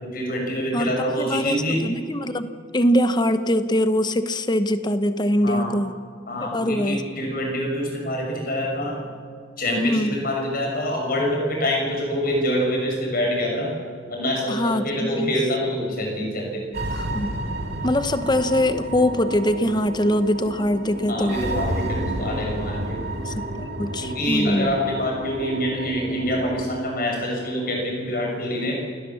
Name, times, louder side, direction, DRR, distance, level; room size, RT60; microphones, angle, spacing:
voice 1, 0.0-1.8 5.4-5.7 6.3-9.0 9.6-13.7 14.1-16.6 21.1-23.0 24.0-28.8, left 1 dB, 50° left, 0 dB, 6.3 m, -26 dB
voice 2, 0.7-5.9 6.5-7.0 9.8-10.2 14.5-15.3 16.9-17.3 17.8-21.4 23.2-24.7, left 1 dB, 20° left, 11 dB, 0.9 m, -23 dB
sound 1, 16.7-26.8, right 1 dB, 55° right, 2.8 m, -30 dB
28.5 x 18.0 x 7.1 m, 2.3 s
head